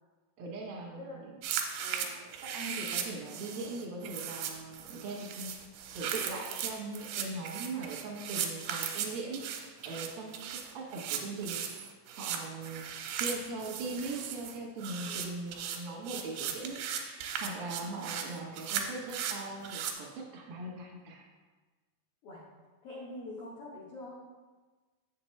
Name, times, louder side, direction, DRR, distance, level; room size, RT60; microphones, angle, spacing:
voice 1, 0.4-1.4 2.4-5.5 5.9-10.4 10.7-11.6 12.1-12.9 13.1-21.2, right 3 dB, 65° right, -1 dB, 1.3 m, -40 dB
sound 1, 1.4-19.9, right 8 dB, 90° right, 2.6 m, -37 dB
voice 2, 1.7-2.3 15.1-15.4 22.2-22.4 22.8-24.2, left 2 dB, 70° left, -6 dB, 1.3 m, -45 dB
7.7 x 6.9 x 3.2 m, 1.3 s
omnidirectional pair, 4.4 m